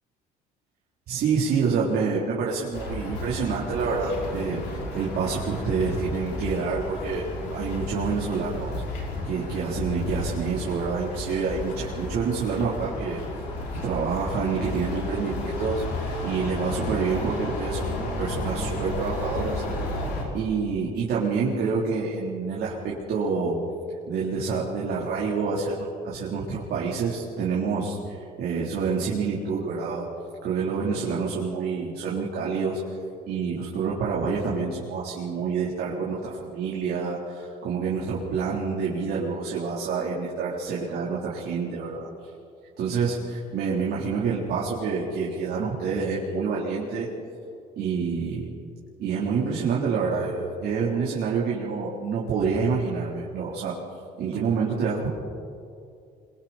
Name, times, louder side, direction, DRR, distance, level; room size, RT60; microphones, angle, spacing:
voice 1, 1.1-8.8 9.2-13.2 13.8-19.6 20.3-23.6 24.1-30.1 30.4-32.9 33.3-42.1 42.8-47.1 47.8-48.5 49.0-53.7 54.2-55.1, right 5 dB, 70° right, -5 dB, 3.9 m, -27 dB
sound 1, 2.7-20.2, left 2 dB, 90° left, 5.9 m, -32 dB
27.0 x 24.0 x 4.4 m, 2.4 s
cardioid pair, 110°, 17 cm